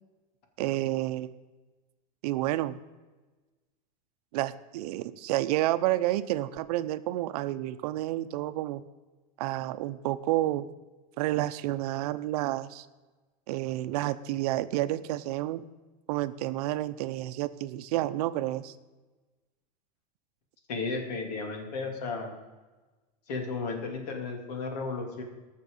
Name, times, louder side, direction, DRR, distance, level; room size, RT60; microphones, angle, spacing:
voice 1, 0.6-1.4 2.2-2.8 4.3-8.8 9.4-10.7 11.2-12.9 13.5-15.6 16.1-18.8, right 15 dB, 75° right, 13 dB, 0.7 m, -30 dB
voice 2, 20.7-22.3 23.3-25.2, left 4 dB, 80° left, 4 dB, 2.7 m, -34 dB
17.5 x 6.6 x 5.4 m, 1.2 s
supercardioid pair, 160°, 20 cm